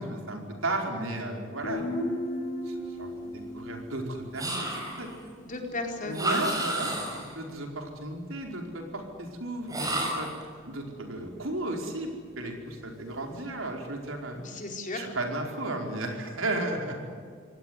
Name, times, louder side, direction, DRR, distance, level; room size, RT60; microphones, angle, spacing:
voice 1, 0.0-2.0 2.6-3.3 3.5-5.1 6.0-10.3 10.6-12.1 12.4-14.4 14.9-17.0, right 2 dB, 80° right, 2 dB, 4.8 m, -34 dB
Guitar, 1.6-5.3, left 1 dB, 75° left, 6.7 m, -35 dB
sound 1, 4.4-5.1 6.1-7.3 9.7-10.4, right 1 dB, 20° right, 6.1 m, -31 dB
voice 2, 5.5-6.5 14.3-15.1, left 2 dB, 40° left, 2 dB, 4.4 m, -35 dB
25.5 x 18.0 x 9.8 m, 2.1 s
head